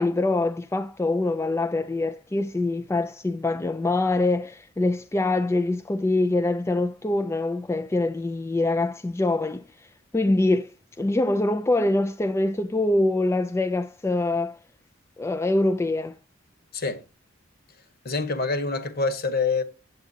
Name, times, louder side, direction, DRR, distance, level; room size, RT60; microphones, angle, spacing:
voice 1, 0.0-10.7 11.0-14.6 15.2-16.1, left 2 dB, 15° left, 0.3 m, -24 dB
voice 2, 18.0-19.6, left 4 dB, 50° left, 1.2 m, -26 dB
8.1 x 8.0 x 2.7 m
head